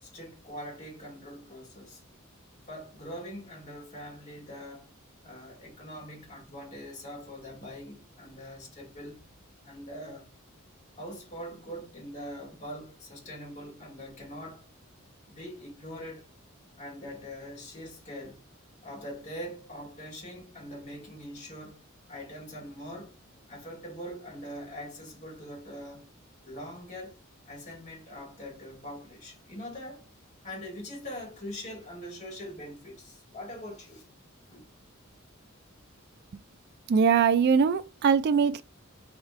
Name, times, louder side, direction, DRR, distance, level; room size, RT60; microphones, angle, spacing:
voice 1, 0.0-2.0 2.7-4.9 5.2-9.2 9.6-10.3 10.9-14.6 15.3-16.3 16.8-18.4 18.8-21.8 22.1-23.2 23.5-26.1 26.4-27.2 27.5-30.0 30.4-34.1 34.5-34.7, equal, 35° left, 2.3 m, -42 dB
voice 2, 36.9-38.6, right 6 dB, 50° right, 0.3 m, -22 dB
3.6 x 3.6 x 3.6 m
head